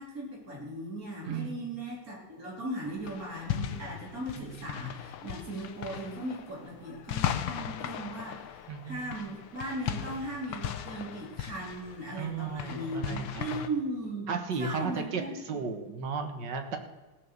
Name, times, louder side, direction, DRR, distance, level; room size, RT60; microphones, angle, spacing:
voice 1, 0.0-14.3 14.6-15.6, right 1 dB, 40° right, -3 dB, 4.3 m, -38 dB
voice 2, 1.3-1.8 4.3-4.6 8.7-9.2 12.2-13.7 14.3-16.8, right 5 dB, 60° right, 6 dB, 1.8 m, -35 dB
sound 1, 2.8-13.7, left 10 dB, 70° left, 1.5 m, -38 dB
17.0 x 6.8 x 6.7 m, 1.2 s
omnidirectional pair, 2.3 m